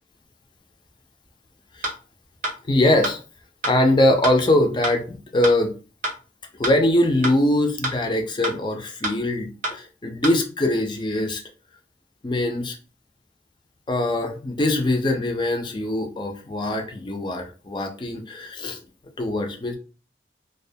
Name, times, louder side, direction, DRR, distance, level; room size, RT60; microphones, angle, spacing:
sound 1, 1.8-1.9 2.4-2.5 3.0-3.1 3.6-3.7 4.2-4.3 4.8-4.9 5.4-5.5 6.0-6.1 6.6-6.7 7.2-7.3 7.8-7.9 8.4-8.5 9.0-9.1 9.6-9.7 10.2-10.3, right 1 dB, 45° right, 0.5 m, -26 dB
voice 1, 2.7-3.2 3.6-5.7 6.5-11.4 12.2-12.8 13.9-18.8 19.2-19.8, left 1 dB, 25° left, 4 dB, 0.4 m, -22 dB
2.3 x 2.1 x 2.6 m, 0.36 s
head